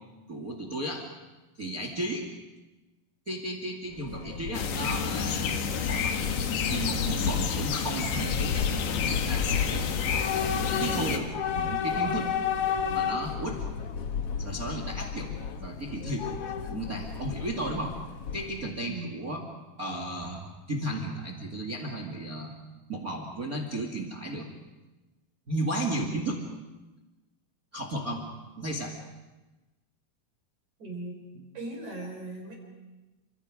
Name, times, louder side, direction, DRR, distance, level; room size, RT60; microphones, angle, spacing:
voice 1, 0.3-1.0 1.6-2.3 3.3-6.2 6.7-9.9 10.8-12.3 12.9-13.6 14.4-16.3 16.7-18.0 18.3-19.4 19.8-22.5 22.9-24.5 25.5-26.4 27.7-28.2 28.6-28.9, right 1 dB, 30° right, 3 dB, 1.9 m, -34 dB
Train / Subway metro underground, 3.9-18.8, left 7 dB, 70° left, 1.4 m, -32 dB
sound 1, 4.5-11.2, left 6 dB, 85° left, 3.7 m, -30 dB
voice 2, 30.8-32.6, right 2 dB, 50° right, 1 dB, 6.0 m, -39 dB
30.0 x 26.0 x 5.0 m, 1.1 s
omnidirectional pair, 4.4 m